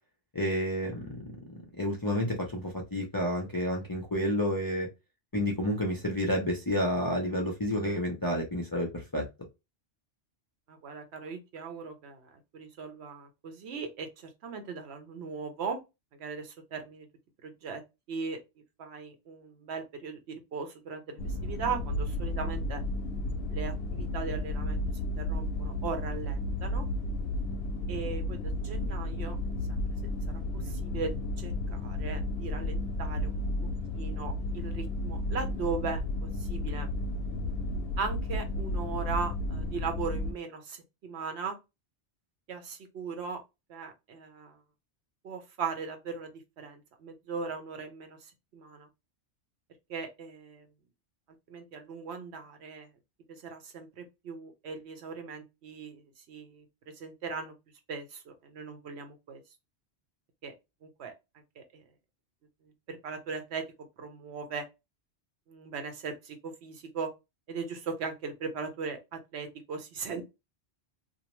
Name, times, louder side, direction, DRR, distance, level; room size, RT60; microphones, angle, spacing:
voice 1, 0.3-4.9 5.3-9.2, equal, 30° left, 0.4 m, -30 dB
voice 2, 10.7-15.8 16.2-17.1 17.4-17.8 18.1-18.4 18.8-22.8 23.5-24.8 25.2-26.9 27.9-29.4 29.7-29.8 30.3-33.4 33.9-36.9 38.0-41.6 42.5-43.4 43.7-44.6 45.2-48.9 49.9-50.7 51.5-52.9 53.3-57.6 57.9-59.4 60.4-60.5 60.8-61.1 61.6-61.9 62.6-64.7 65.5-67.1 67.5-70.2, right 5 dB, 70° right, 1.0 m, -38 dB
sound 1, 21.2-40.3, left 1 dB, 65° left, 0.7 m, -33 dB
2.6 x 2.1 x 2.9 m
omnidirectional pair, 1.1 m